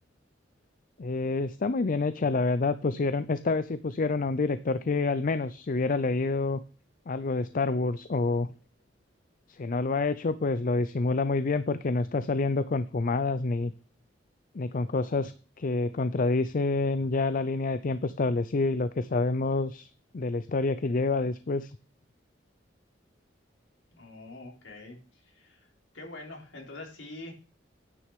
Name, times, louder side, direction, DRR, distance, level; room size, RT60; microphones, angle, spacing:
voice 1, 1.0-6.6 7.1-8.5 9.5-13.7 14.5-19.9 20.1-21.8, left 3 dB, 45° left, 14 dB, 0.5 m, -28 dB
voice 2, 23.9-25.7 25.9-27.3, left 2 dB, 75° left, 0 dB, 3.6 m, -45 dB
9.8 x 6.3 x 6.8 m, 0.39 s
head